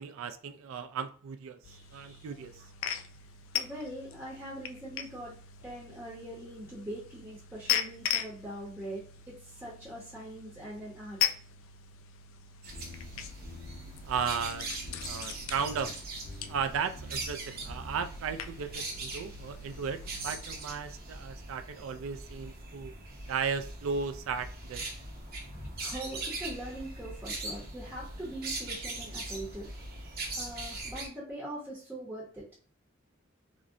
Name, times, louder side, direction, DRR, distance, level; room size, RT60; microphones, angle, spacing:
voice 1, 0.0-2.6 14.0-15.9 16.5-22.9 23.3-24.8, right 6 dB, 75° right, 0.3 m, -35 dB
sound 1, 1.6-20.4, left 9 dB, 70° left, 0.3 m, -39 dB
voice 2, 1.6-2.3 3.5-5.3 5.6-11.2 22.8-22.9 25.3-29.7 30.4-32.4, right 1 dB, 10° right, 0.7 m, -42 dB
sound 2, 12.6-31.1, right 2 dB, 50° right, 0.8 m, -41 dB
sound 3, 12.7-13.1 13.4-13.8 14.1-14.5 14.8-15.2 15.5-15.9 16.2-16.6 16.9-17.3 17.7-18.0, left 1 dB, 25° left, 0.8 m, -45 dB
3.7 x 2.1 x 2.5 m
head